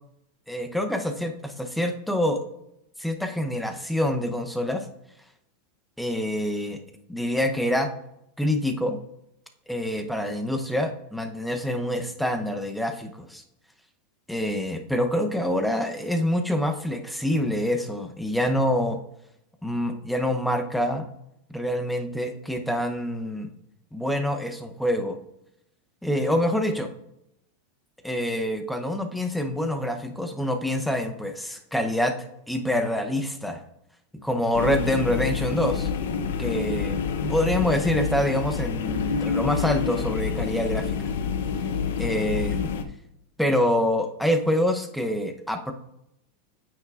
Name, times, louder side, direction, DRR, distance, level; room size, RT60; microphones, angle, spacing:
voice 1, 0.5-2.4 3.0-4.9 6.0-6.8 7.1-7.9 8.4-9.0 9.7-13.4 14.3-19.0 19.6-21.0 21.5-23.5 23.9-25.2 26.0-26.9 28.0-32.1 32.5-33.6 34.2-35.9 36.4-41.0 42.0-42.7 43.4-45.7, left 1 dB, ahead, 5 dB, 0.7 m, -26 dB
sound 1, 34.5-42.8, left 6 dB, 80° left, 0.7 m, -28 dB
8.8 x 5.8 x 2.4 m, 0.81 s
supercardioid pair, 145°, 0 cm